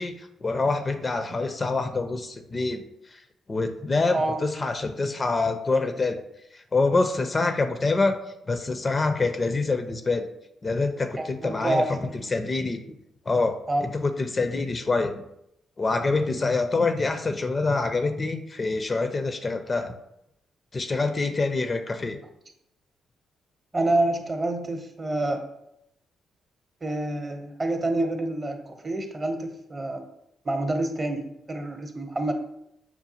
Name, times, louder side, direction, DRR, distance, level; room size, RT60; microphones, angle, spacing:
voice 1, 0.0-2.8 3.1-3.2 3.5-6.2 6.5-8.2 8.5-10.3 10.6-12.0 12.3-12.8 13.3-15.2 15.8-19.9 20.7-22.2, left 3 dB, 35° left, 8 dB, 0.4 m, -26 dB
voice 2, 11.2-12.1 13.7-13.8 23.7-25.4 26.8-30.0 30.4-32.3, right 2 dB, 35° right, 5 dB, 0.7 m, -27 dB
5.6 x 2.3 x 2.8 m, 0.80 s
supercardioid pair, 55°, 0 cm